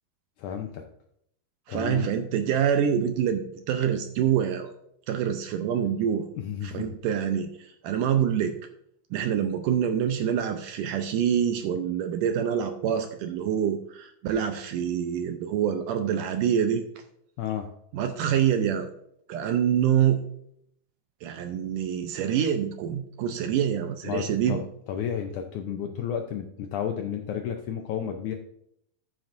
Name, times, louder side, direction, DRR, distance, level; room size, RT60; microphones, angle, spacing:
voice 1, 0.4-0.8 1.7-2.1 6.4-7.1 17.4-17.7 24.0-24.6 24.9-28.3, left 8 dB, 80° left, 4 dB, 1.8 m, -32 dB
voice 2, 1.7-4.7 5.1-6.3 6.6-8.5 9.1-16.8 17.9-18.9 19.3-20.2 21.2-24.6, right 9 dB, 80° right, 7 dB, 2.0 m, -26 dB
13.5 x 7.5 x 2.6 m, 0.73 s
omnidirectional pair, 4.2 m